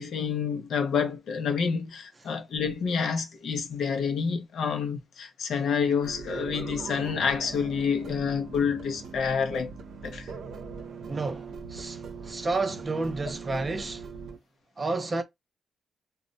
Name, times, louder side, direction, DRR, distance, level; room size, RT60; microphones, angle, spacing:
voice 1, 0.0-9.7 10.0-10.3, left 6 dB, 65° left, 0.6 m, -28 dB
sound 1, 6.0-14.4, right 5 dB, 75° right, 0.6 m, -40 dB
voice 2, 11.1-14.0 14.8-15.2, right 3 dB, 25° right, 0.5 m, -31 dB
2.1 x 2.1 x 3.7 m
wide cardioid pair, 175°, 0 cm